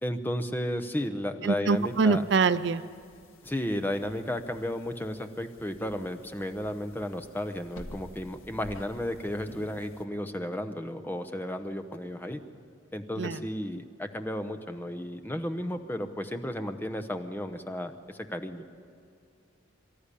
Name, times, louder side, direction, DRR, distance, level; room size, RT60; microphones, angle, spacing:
voice 1, 0.0-2.2 3.4-12.4 12.9-18.6, left 1 dB, 10° left, 8 dB, 0.8 m, -33 dB
voice 2, 1.4-2.8 13.2-13.4, right 4 dB, 55° right, 15 dB, 0.5 m, -24 dB
sound 1, 1.7-10.0, left 1 dB, 90° left, 1.8 m, -51 dB
24.0 x 13.5 x 10.0 m, 2.3 s
head